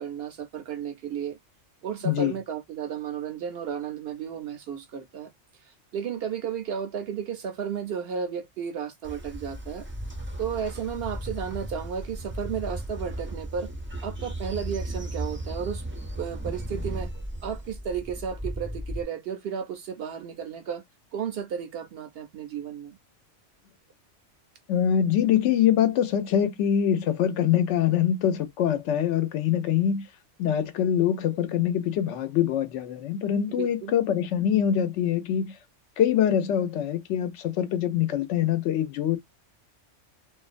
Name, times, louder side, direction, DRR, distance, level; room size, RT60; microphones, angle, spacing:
voice 1, 0.0-1.4 1.8-5.3 5.7-9.9 10.4-13.7 14.0-15.8 16.2-17.1 17.4-20.8 21.1-23.0 33.5-33.9, right 7 dB, 65° right, 0.7 m, -33 dB
voice 2, 2.0-2.4 24.7-30.1 30.4-35.5 36.0-39.2, left 9 dB, 75° left, 0.9 m, -24 dB
Train, 9.0-19.0, right 1 dB, 20° right, 0.3 m, -35 dB
2.5 x 2.1 x 2.4 m
omnidirectional pair, 1.2 m